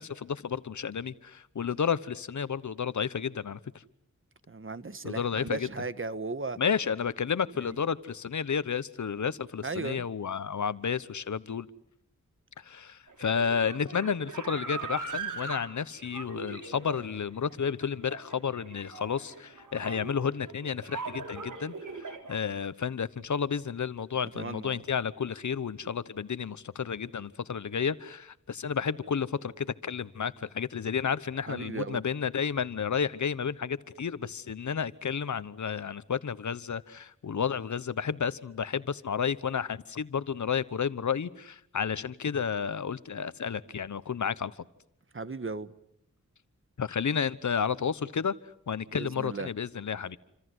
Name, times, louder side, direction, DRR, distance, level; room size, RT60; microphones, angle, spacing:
voice 1, 0.0-3.6 5.0-5.7 6.6-11.7 12.6-44.5 46.8-48.3 48.7-50.2, left 7 dB, 70° left, 16 dB, 1.1 m, -31 dB
voice 2, 4.5-6.6 7.7-7.8 9.6-10.0 24.3-24.8 31.5-32.0 45.1-45.7 48.9-49.5, right 3 dB, 45° right, 14 dB, 1.4 m, -36 dB
sound 1, 13.1-22.4, right 4 dB, 90° right, 4.3 m, -40 dB
28.5 x 26.0 x 7.9 m, 0.72 s
wide cardioid pair, 75°, 30 cm